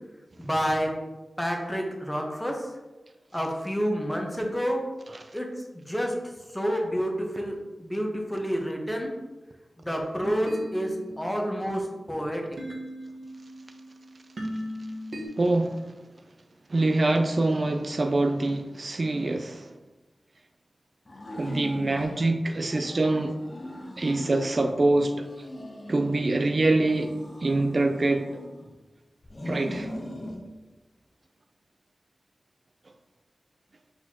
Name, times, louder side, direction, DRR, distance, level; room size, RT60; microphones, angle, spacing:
voice 1, 0.4-0.9 1.4-2.7 3.3-4.8 5.3-5.5 5.7-6.2 6.5-9.2 9.8-12.5, equal, 10° left, 1 dB, 0.9 m, -29 dB
sound 1, 10.2-15.3, equal, 70° right, 1.0 m, -38 dB
voice 2, 15.4-15.8 16.7-19.7 21.4-23.4 24.0-25.3 25.9-27.1 27.4-28.3 29.5-29.9, right 2 dB, 50° right, 6 dB, 0.3 m, -24 dB
sound 2, 21.1-22.3 22.7-24.8 25.2-26.4 26.8-28.7 29.2-30.4, left 1 dB, 40° left, 0.7 m, -40 dB
4.3 x 4.3 x 2.8 m, 1.1 s
wide cardioid pair, 60°, 0 cm